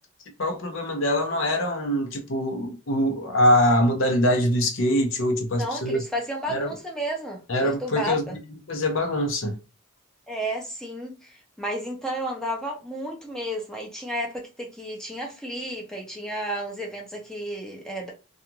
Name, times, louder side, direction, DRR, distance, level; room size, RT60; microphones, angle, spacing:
voice 1, 0.4-6.0 6.5-6.7 7.5-8.4 8.7-9.6, left 1 dB, 65° left, 0.8 m, -23 dB
voice 2, 5.6-8.3 10.3-18.1, equal, 5° left, 0.6 m, -32 dB
2.4 x 2.4 x 2.8 m
head